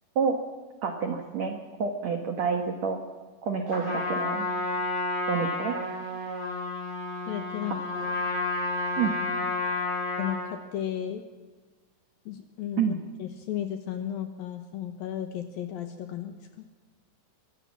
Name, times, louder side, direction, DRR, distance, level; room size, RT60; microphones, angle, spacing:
voice 1, 0.8-3.0 3.4-4.5 5.3-5.7 9.0-9.1 9.8-10.0 12.8-13.0, right 6 dB, 75° right, 5 dB, 1.6 m, -28 dB
Trumpet, 3.7-10.5, left 2 dB, 35° left, 7.6 m, -30 dB
voice 2, 7.3-8.1 10.2-11.2 12.3-12.9 13.2-16.4, left 10 dB, 70° left, 7 dB, 2.4 m, -34 dB
24.0 x 16.0 x 7.4 m, 1.4 s
omnidirectional pair, 5.3 m